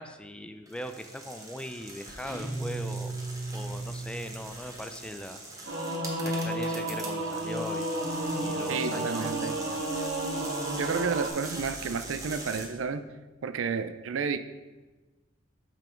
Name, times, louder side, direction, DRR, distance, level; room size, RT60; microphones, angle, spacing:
voice 1, 0.0-3.1 3.5-5.4 6.2-7.9 8.4-9.8, left 1 dB, 5° left, 8 dB, 0.4 m, -40 dB
sound 1, 0.7-12.7, right 2 dB, 20° right, 1.2 m, -43 dB
sound 2, 2.2-4.8, right 3 dB, 40° right, 1.9 m, -36 dB
Singing / Musical instrument, 5.7-11.3, right 1 dB, 60° right, 1.7 m, -32 dB
voice 2, 8.7-9.6 10.8-13.1 13.4-14.4, right 5 dB, 85° right, 11 dB, 0.5 m, -31 dB
7.0 x 6.0 x 4.4 m, 1.2 s
head